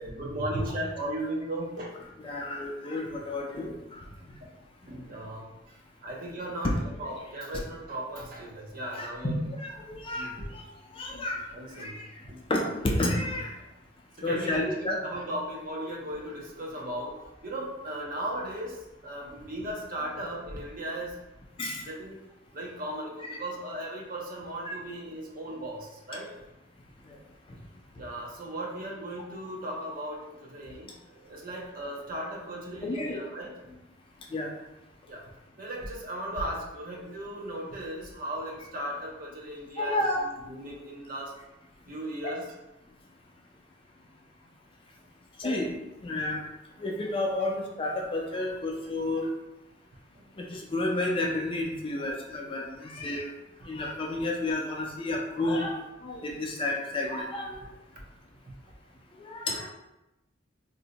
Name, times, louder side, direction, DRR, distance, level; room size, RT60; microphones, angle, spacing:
voice 1, 0.0-2.0 4.4-4.6 4.9-9.4 10.1-10.5 11.5-12.4 14.2-21.2 21.8-22.2 22.5-26.3 28.0-33.8 35.1-35.2 35.6-41.3 41.9-42.5 50.1-50.3, right 1 dB, 50° right, -1 dB, 0.6 m, -37 dB
voice 2, 2.2-4.0 9.0-10.6 11.0-11.4 11.8-12.0 12.5-13.6 14.2-15.0 21.6-21.8 23.3-23.4 24.7-24.8 32.8-33.2 34.3-34.5 39.8-40.2 45.4-45.7 46.0-46.4 46.8-49.3 50.4-53.3 53.6-57.6 59.2-59.7, left 2 dB, 30° left, 0 dB, 0.4 m, -31 dB
2.6 x 2.1 x 3.9 m, 0.95 s
head